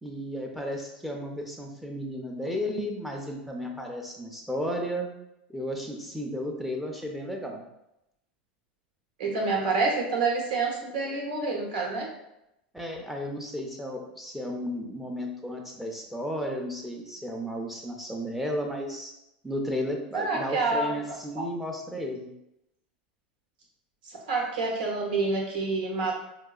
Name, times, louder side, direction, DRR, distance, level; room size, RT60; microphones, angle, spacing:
voice 1, 0.0-5.1 5.5-7.6 12.7-19.1 19.4-22.4, equal, 5° right, 1 dB, 0.6 m, -33 dB
voice 2, 9.2-12.1 20.1-20.9 24.0-26.2, right 3 dB, 75° right, -1 dB, 1.0 m, -27 dB
4.6 x 2.3 x 2.3 m, 0.86 s
hypercardioid pair, 95°, 5 cm